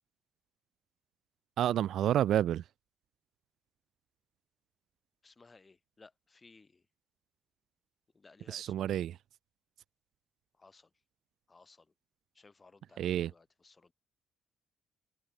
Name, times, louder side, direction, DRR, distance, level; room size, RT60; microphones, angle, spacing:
voice 1, 1.6-2.6 8.5-9.2 13.0-13.3, right 11 dB, 65° right, 0.4 m, -29 dB
voice 2, 5.2-6.8 8.1-9.0 10.6-10.9 11.5-11.9 12.3-13.9, left 3 dB, 30° left, 5.9 m, -60 dB
hypercardioid pair, 45°, 0 cm